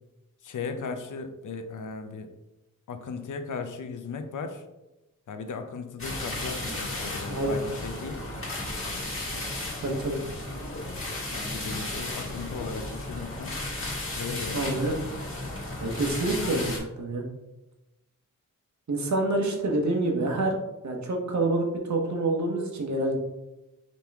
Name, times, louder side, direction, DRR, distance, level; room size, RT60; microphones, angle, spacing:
voice 1, 0.4-2.3 2.9-4.6 5.3-8.3 9.3-9.4 11.3-13.6 14.1-14.8, left 4 dB, 70° left, 7 dB, 0.6 m, -37 dB
sound 1, 6.0-16.8, left 2 dB, 40° left, 1.5 m, -34 dB
voice 2, 7.3-7.6 9.8-10.2 14.5-14.9 15.8-17.3 18.9-20.6 20.8-23.2, right 2 dB, 60° right, 2 dB, 0.9 m, -27 dB
5.2 x 3.0 x 3.4 m, 0.98 s
wide cardioid pair, 155°, 33 cm